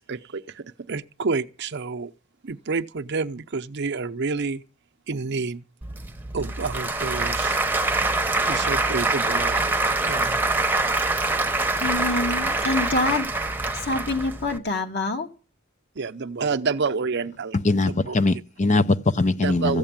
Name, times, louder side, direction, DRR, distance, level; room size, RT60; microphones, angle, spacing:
voice 1, 0.0-2.1 2.4-4.6 5.1-5.6 6.3-7.6 8.5-9.7 10.0-10.4 15.9-17.6 17.8-18.2 19.4-19.8, right 4 dB, 55° right, 0.7 m, -29 dB
Applause / Crowd, 5.8-14.6, right 2 dB, 10° right, 1.0 m, -25 dB
voice 2, 11.4-13.3 13.6-15.3, left 2 dB, 55° left, 2.3 m, -26 dB
voice 3, 17.6-19.8, left 2 dB, 35° left, 0.7 m, -21 dB
15.0 x 8.1 x 8.9 m
head